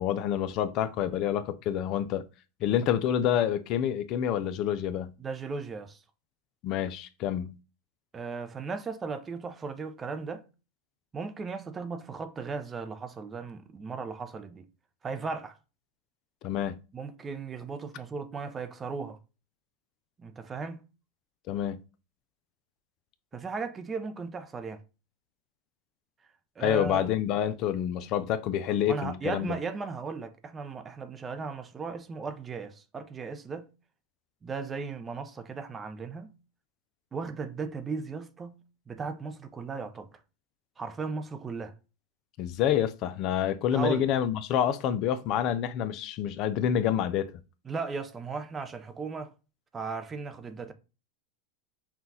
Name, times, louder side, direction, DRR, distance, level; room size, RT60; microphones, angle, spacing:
voice 1, 0.0-2.3 2.6-5.1 6.6-7.5 16.4-16.8 21.5-21.8 26.6-29.5 42.4-47.4, left 10 dB, 45° left, 0.4 m, -28 dB
voice 2, 5.2-6.0 8.1-10.4 11.1-14.7 15.0-15.6 16.9-19.2 20.2-20.8 23.3-24.8 26.6-27.1 28.9-33.7 34.4-36.3 37.1-38.6 38.9-40.1 40.8-41.7 43.7-44.1 47.7-49.3 49.7-50.7, right 4 dB, 20° right, 0.5 m, -36 dB
5.8 x 2.3 x 2.6 m
hypercardioid pair, 120°, 0 cm